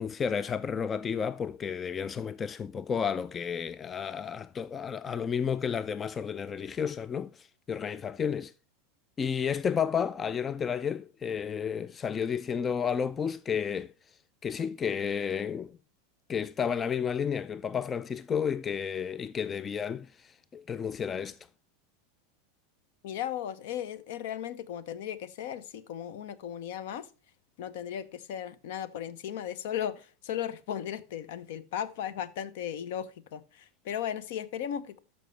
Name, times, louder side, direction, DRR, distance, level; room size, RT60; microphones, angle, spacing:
voice 1, 0.0-8.5 9.2-13.9 14.4-15.8 16.3-21.4, left 7 dB, 25° left, 0.3 m, -32 dB
voice 2, 23.0-27.1 27.6-35.0, left 10 dB, 65° left, 0.7 m, -36 dB
13.0 x 5.4 x 3.2 m
hypercardioid pair, 90°, 0 cm